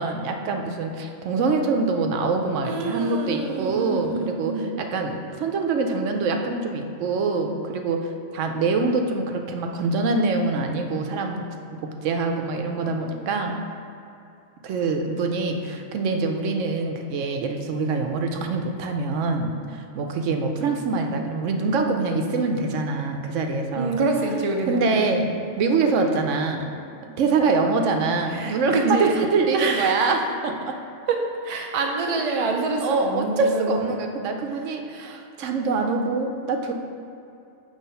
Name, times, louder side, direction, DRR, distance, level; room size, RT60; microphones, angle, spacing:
voice 1, 0.0-11.5 11.8-13.6 14.6-23.9 24.7-25.3 25.6-26.7 27.2-30.8 32.8-36.7, right 3 dB, 80° right, 4 dB, 1.0 m, -24 dB
voice 2, 2.6-4.7 23.7-24.8 28.3-29.1 29.5-30.1 31.1-31.2 31.4-33.9, right 3 dB, 35° right, 1 dB, 0.6 m, -26 dB
7.3 x 3.3 x 5.5 m, 2.7 s
omnidirectional pair, 1.3 m